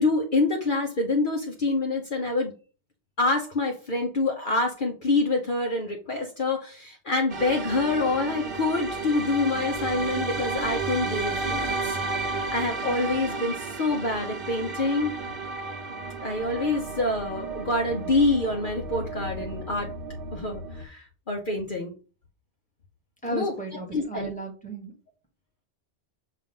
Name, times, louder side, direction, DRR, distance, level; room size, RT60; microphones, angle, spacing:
voice 1, 0.0-2.5 3.2-15.1 16.2-19.9 20.3-21.9 23.3-23.5 23.9-24.3, left 2 dB, 50° left, 1 dB, 1.0 m, -26 dB
sound 1, 7.3-20.8, right 3 dB, 55° right, 1.0 m, -33 dB
voice 2, 23.2-24.9, right 1 dB, 5° left, 1 dB, 1.5 m, -34 dB
7.3 x 2.5 x 5.4 m, 0.35 s
omnidirectional pair, 1.1 m